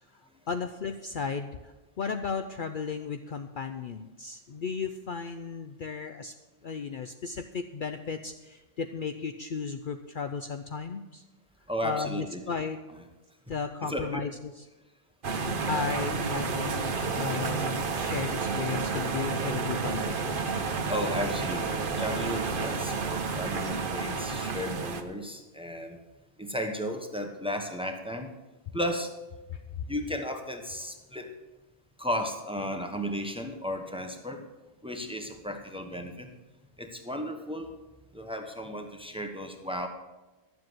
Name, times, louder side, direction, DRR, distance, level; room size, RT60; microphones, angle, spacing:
voice 1, 0.1-6.3 6.6-11.2 11.8-12.8 13.5-14.6 15.7-20.2 29.5-29.6, left 5 dB, 55° left, 7 dB, 0.7 m, -35 dB
voice 2, 11.7-12.4 13.8-14.2 20.9-26.0 26.4-28.3 28.7-29.2 29.9-31.3 32.0-34.4 34.8-36.3 36.8-37.7 38.1-39.9, equal, 5° right, 4 dB, 1.1 m, -34 dB
sound 1, 15.2-25.0, right 4 dB, 50° right, 1.1 m, -30 dB
11.5 x 7.6 x 7.8 m, 1.1 s
omnidirectional pair, 1.1 m